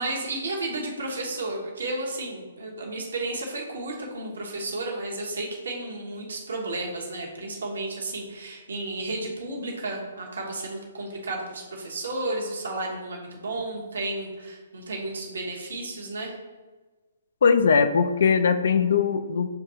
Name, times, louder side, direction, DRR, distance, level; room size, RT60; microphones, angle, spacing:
voice 1, 0.0-16.3, right 2 dB, 75° right, -1 dB, 1.0 m, -32 dB
voice 2, 17.4-19.5, left 6 dB, 65° left, 10 dB, 0.3 m, -20 dB
6.5 x 2.6 x 2.8 m, 1.3 s
hypercardioid pair, 130°, 0 cm